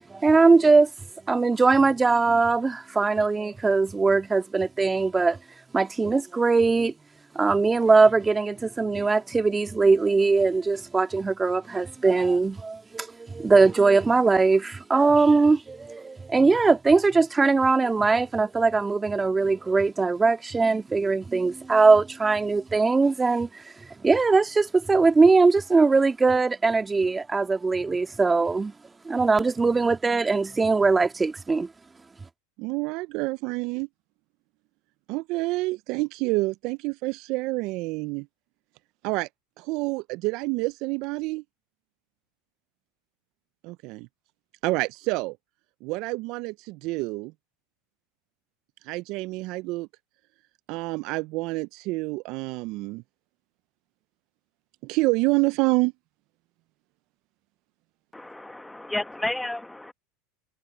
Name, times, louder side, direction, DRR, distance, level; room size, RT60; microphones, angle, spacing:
voice 1, 0.1-0.9 1.3-5.4 5.7-6.9 7.3-23.6 24.0-28.7 29.1-31.7, right 4 dB, 15° right, 2.1 m, -21 dB
voice 2, 32.6-33.9 35.1-38.3 39.0-39.3 39.6-41.4 43.6-44.1 44.6-45.4 45.8-47.3 48.8-49.9 50.7-53.0 54.8-55.9, right 23 dB, 60° right, 0.6 m, -28 dB
voice 3, 58.1-59.9, left 1 dB, 5° left, 1.3 m, -32 dB
hypercardioid pair, 95°, 0 cm